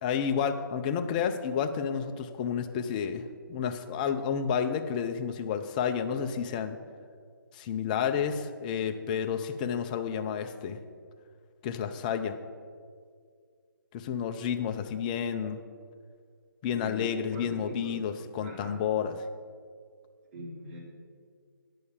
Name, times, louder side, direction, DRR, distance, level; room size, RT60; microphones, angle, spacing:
voice 1, 0.0-6.8 7.5-10.8 11.6-12.4 13.9-15.6 16.6-19.2, left 7 dB, 20° left, 8 dB, 0.5 m, -30 dB
voice 2, 16.7-18.0 18.4-18.8 20.3-20.8, right 1 dB, 30° right, -3 dB, 3.0 m, -41 dB
9.8 x 6.4 x 7.2 m, 2.1 s
figure-of-eight pair, 150°, 12 cm